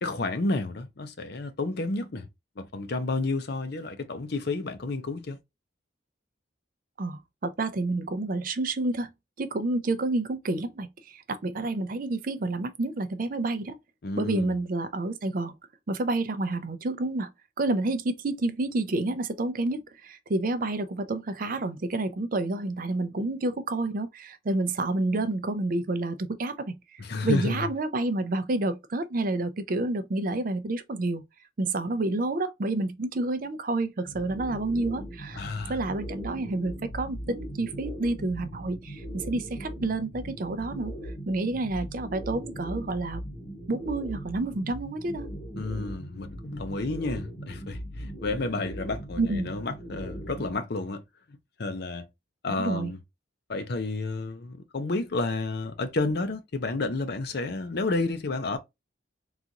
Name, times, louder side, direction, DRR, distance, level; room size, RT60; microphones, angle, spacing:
voice 1, 0.0-2.3 2.6-5.4 14.0-14.6 27.0-27.7 35.3-35.8 45.6-51.0 51.6-52.1 52.4-53.0 53.5-58.6, left 3 dB, 55° left, 0.6 m, -31 dB
voice 2, 7.0-9.1 9.4-13.8 14.2-15.5 15.9-17.3 17.6-31.3 31.6-35.4 35.7-40.9 41.3-43.2 43.7-45.3 49.2-49.5 52.6-52.9, right 2 dB, 45° right, 0.5 m, -29 dB
sound 1, 34.0-50.5, equal, 30° left, 0.9 m, -39 dB
3.9 x 2.4 x 2.8 m
head